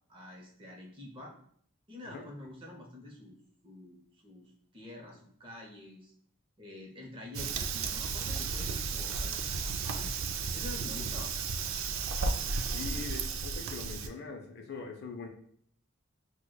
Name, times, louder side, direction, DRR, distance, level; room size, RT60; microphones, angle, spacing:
voice 1, 0.1-1.3 1.9-3.4 3.6-6.1 6.6-11.5 12.9-13.0, left 2 dB, 25° right, 0 dB, 0.6 m, -47 dB
Fire, 7.3-14.1, right 4 dB, 70° right, 0.3 m, -34 dB
voice 2, 12.7-15.3, left 4 dB, 50° left, 3 dB, 0.5 m, -42 dB
6.1 x 2.1 x 2.2 m, 0.63 s
head